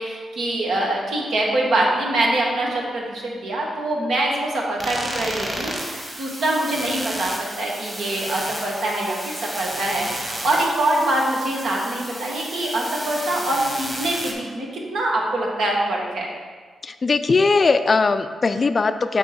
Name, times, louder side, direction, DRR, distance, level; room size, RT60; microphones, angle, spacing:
voice 1, 0.0-16.3, right 1 dB, 75° right, -2 dB, 1.4 m, -24 dB
sound 1, 4.8-14.3, right 1 dB, 20° right, 1.5 m, -32 dB
voice 2, 16.8-19.2, left 4 dB, 45° left, 10 dB, 0.4 m, -19 dB
6.9 x 3.1 x 5.8 m, 1.5 s
cardioid pair, 60°, 0 cm